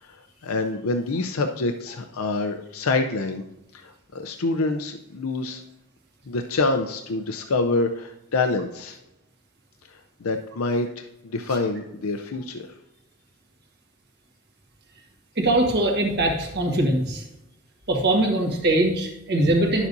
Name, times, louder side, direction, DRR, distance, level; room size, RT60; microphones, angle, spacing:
voice 1, 0.0-3.4 3.7-5.6 6.3-9.0 9.9-12.7, left 3 dB, 75° left, 5 dB, 0.6 m, -26 dB
voice 2, 15.4-17.2 17.9-19.9, right 1 dB, 50° right, 2 dB, 1.6 m, -22 dB
10.5 x 7.1 x 2.7 m, 0.91 s
head